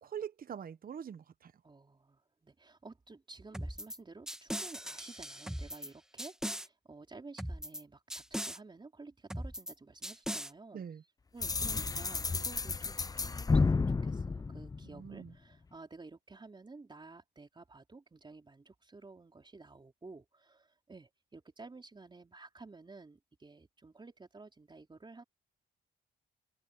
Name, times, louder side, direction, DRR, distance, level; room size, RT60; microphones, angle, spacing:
voice 1, 0.0-1.5 10.7-11.0 14.8-15.3, right 8 dB, 45° right, 1.3 m, -43 dB
voice 2, 1.6-25.2, right 3 dB, 25° right, 4.4 m, -53 dB
sound 1, 3.5-4.0 4.3-5.9 6.2-6.7 7.4-7.8 8.1-8.6 9.3-9.7 10.0-10.5, equal, 5° right, 2.1 m, -39 dB
sound 2, 11.4-15.3, left 4 dB, 20° left, 0.5 m, -31 dB
open air
cardioid pair, 90°, 20 cm